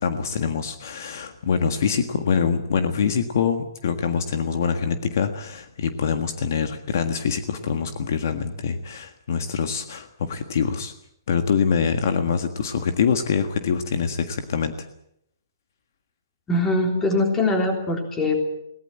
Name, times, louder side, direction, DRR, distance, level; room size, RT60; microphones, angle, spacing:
voice 1, 0.0-10.9 11.3-14.9, left 6 dB, 50° left, 8 dB, 1.6 m, -24 dB
voice 2, 16.5-18.4, left 2 dB, 10° left, 4 dB, 3.5 m, -22 dB
21.5 x 18.5 x 9.0 m, 0.77 s
hypercardioid pair, 170°, 2 cm